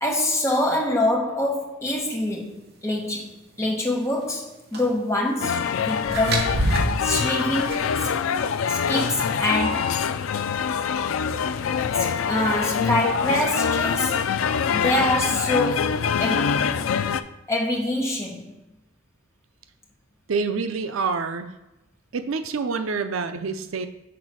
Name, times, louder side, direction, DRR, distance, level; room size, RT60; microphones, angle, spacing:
voice 1, 0.0-8.1 8.6-9.9 11.9-14.3 14.7-16.7 17.5-18.5, left 1 dB, 15° left, 1.1 m, -25 dB
sound 1, 4.7-4.9 6.1-8.0, right 1 dB, 50° right, 1.0 m, -26 dB
sound 2, 5.4-17.2, left 6 dB, 80° left, 0.4 m, -24 dB
voice 2, 20.3-21.5 22.1-23.9, right 4 dB, 80° right, 0.5 m, -27 dB
5.9 x 4.0 x 6.2 m
head